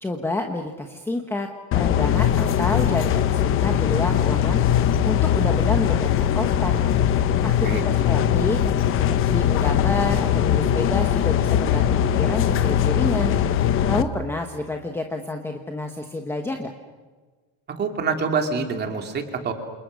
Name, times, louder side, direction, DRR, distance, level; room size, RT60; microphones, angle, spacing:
voice 1, 0.0-1.5 1.7-4.6 5.0-6.7 7.4-8.6 8.9-11.9 12.1-13.3 13.9-16.7, left 2 dB, 5° left, 4 dB, 1.1 m, -29 dB
sound 1, 1.7-14.0, left 10 dB, 30° left, 0.9 m, -20 dB
voice 2, 17.8-19.5, right 5 dB, 20° right, 5 dB, 2.7 m, -26 dB
29.0 x 28.0 x 6.3 m, 1.4 s
cardioid pair, 175°, 44 cm